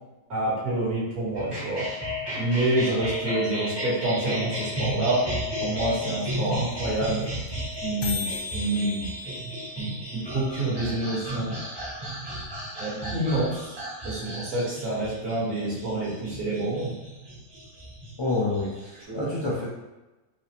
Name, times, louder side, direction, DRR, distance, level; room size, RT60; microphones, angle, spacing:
voice 1, 0.3-1.9 2.4-5.3 5.6-7.2 7.8-9.1 9.8-11.6 12.8-16.9 19.1-19.2, right 2 dB, 75° right, -7 dB, 1.9 m, -28 dB
sound 1, 1.3-19.0, equal, 25° right, 0.6 m, -33 dB
sound 2, 5.9-6.0 6.2-6.3 6.5-6.7 7.0-7.1 7.2-7.5 7.7-7.8 8.0-12.0, left 4 dB, 75° left, 1.1 m, -39 dB
voice 2, 18.2-19.7, left 2 dB, 50° left, -8 dB, 0.3 m, -28 dB
4.7 x 2.0 x 2.8 m, 1.1 s
omnidirectional pair, 1.6 m